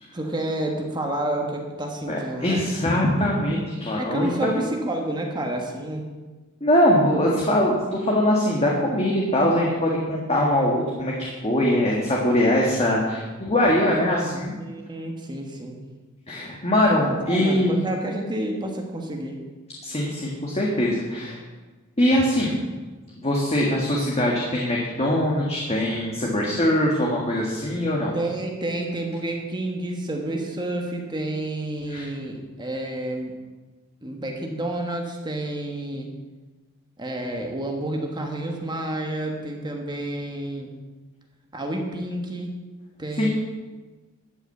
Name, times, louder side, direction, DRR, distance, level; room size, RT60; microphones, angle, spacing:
voice 1, 0.1-2.6 4.0-6.1 13.9-14.3 14.6-15.8 17.2-19.4 28.1-33.3 34.0-36.1 37.0-40.7 41.5-42.5 43.0-43.3, right 1 dB, 20° right, 2 dB, 1.4 m, -30 dB
voice 2, 2.1-4.6 6.6-14.6 16.3-17.8 19.8-21.4 22.0-22.6 23.1-28.1 31.9-32.1 43.2-43.3, left 1 dB, 30° left, -3 dB, 1.7 m, -22 dB
13.0 x 6.1 x 8.1 m, 1.3 s
head